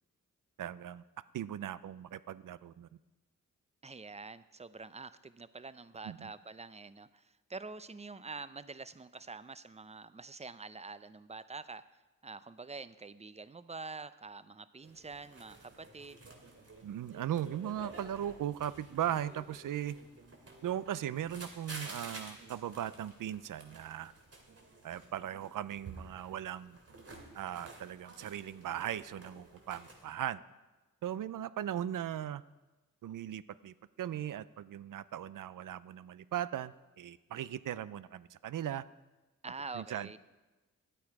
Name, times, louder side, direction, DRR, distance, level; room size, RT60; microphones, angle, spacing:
voice 1, 0.6-1.0 1.3-2.9 6.0-6.3 16.8-20.0 20.6-24.1 24.8-26.8 27.3-30.4 31.0-32.4 33.0-38.8 39.7-40.2, right 11 dB, 65° right, 17 dB, 0.5 m, -38 dB
voice 2, 3.8-11.8 12.2-16.3 39.4-40.2, right 4 dB, 20° right, 15 dB, 0.5 m, -46 dB
sound 1, 14.8-30.0, right 2 dB, 45° right, 2.6 m, -51 dB
11.5 x 8.5 x 4.8 m, 1.1 s
cardioid pair, 50°, 34 cm